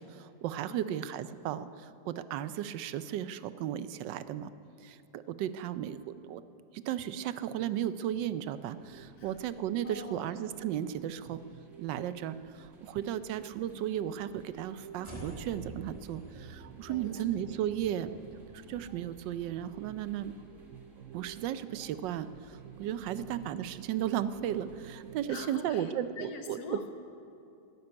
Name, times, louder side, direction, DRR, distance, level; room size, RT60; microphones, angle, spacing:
voice 1, 0.0-4.5 4.8-6.4 6.7-11.4 11.8-18.1 18.7-20.3 21.1-26.8, right 11 dB, 85° right, 14 dB, 1.3 m, -35 dB
voice 2, 0.7-1.0 9.2-9.4 9.8-10.3 16.9-17.3 23.1-23.5 25.3-26.9, left 4 dB, 60° left, 6 dB, 1.5 m, -45 dB
sound 1, 7.6-25.7, right 10 dB, 70° right, 0.8 m, -52 dB
sound 2, 8.4-25.4, right 1 dB, 45° right, 2.1 m, -61 dB
sound 3, 15.0-21.3, right 1 dB, 15° left, 3.3 m, -50 dB
13.5 x 9.6 x 9.7 m, 2.7 s
omnidirectional pair, 1.9 m